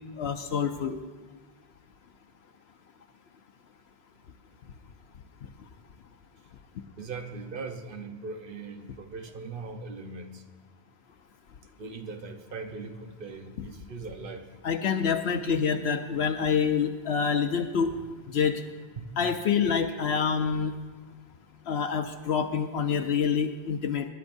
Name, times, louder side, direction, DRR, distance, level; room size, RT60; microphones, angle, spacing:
voice 1, 0.2-1.0 14.6-17.9 18.3-18.6 19.2-20.7 21.7-24.1, left 6 dB, 75° left, 6 dB, 0.9 m, -26 dB
voice 2, 7.0-10.4 11.8-14.5 17.8-18.0 19.0-19.1, right 4 dB, 55° right, 6 dB, 1.1 m, -40 dB
25.0 x 11.5 x 2.6 m, 1.3 s
omnidirectional pair, 1.1 m